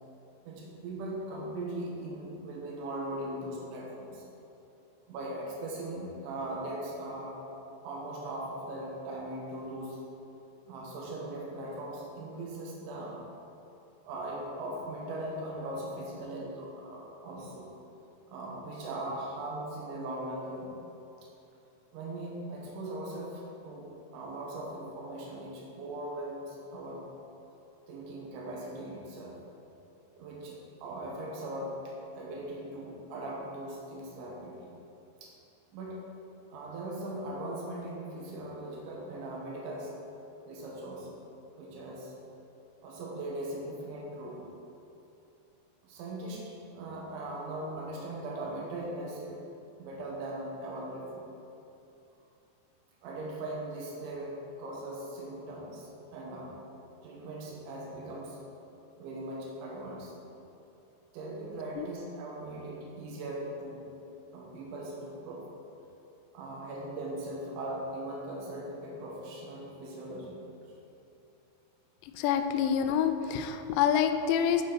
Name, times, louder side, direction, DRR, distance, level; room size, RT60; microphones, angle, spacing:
voice 1, 0.4-4.3 5.1-7.4 7.8-10.0 10.7-13.2 14.0-17.7 18.3-20.8 21.2-21.3 21.9-23.9 24.1-27.1 27.9-29.4 30.1-34.7 35.2-35.3 35.7-36.0 36.5-39.9 40.5-41.2 41.6-42.1 42.8-44.5 45.8-49.4 49.8-51.3 53.0-56.6 57.0-58.4 59.0-60.1 61.1-63.8 64.3-65.4 66.3-70.4, right 1 dB, 85° right, -3 dB, 3.6 m, -39 dB
voice 2, 72.0-74.6, left 8 dB, 85° left, 8 dB, 2.8 m, -27 dB
7.9 x 6.9 x 4.5 m, 2.8 s
omnidirectional pair, 5.2 m